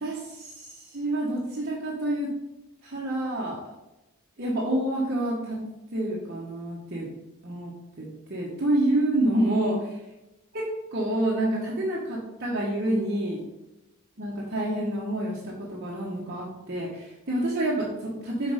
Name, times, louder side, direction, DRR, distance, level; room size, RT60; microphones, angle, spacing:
voice 1, 0.0-2.3 2.8-3.6 4.4-5.6 5.9-7.1 7.4-7.7 8.0-9.8 10.5-10.6 10.9-13.4 14.2-18.5, right 1 dB, 45° right, -5 dB, 1.2 m, -28 dB
6.0 x 4.6 x 5.1 m, 0.97 s
head